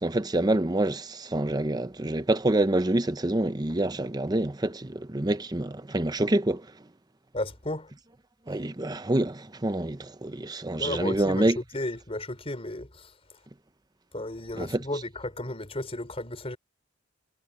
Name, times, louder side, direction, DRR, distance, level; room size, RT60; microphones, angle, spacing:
voice 1, 0.0-6.7 8.5-11.6 14.5-14.8, right 1 dB, 20° right, 0.8 m, -27 dB
voice 2, 7.3-7.9 10.8-11.5 11.7-13.1 14.1-16.6, left 1 dB, 30° left, 4.7 m, -34 dB
head